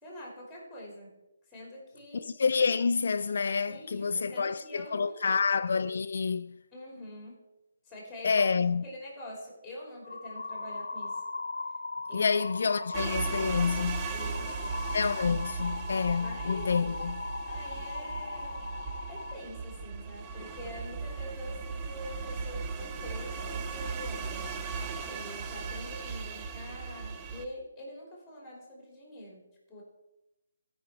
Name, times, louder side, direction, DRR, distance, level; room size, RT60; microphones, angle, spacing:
voice 1, 0.0-1.2 1.5-2.3 3.7-5.4 6.7-7.4 7.8-8.5 8.8-11.2 12.1-12.4 14.1-14.9 16.2-16.7 17.4-18.7 19.1-24.6 25.0-29.8, left 1 dB, 5° left, 3.0 m, -45 dB
voice 2, 2.1-6.6 8.2-8.8 12.1-14.1 14.9-17.2, left 5 dB, 65° left, 0.3 m, -28 dB
sound 1, 10.0-19.4, left 3 dB, 80° left, 0.7 m, -38 dB
sound 2, 12.9-27.5, right 5 dB, 20° right, 0.6 m, -37 dB
14.0 x 5.2 x 4.8 m
figure-of-eight pair, 150°, 0 cm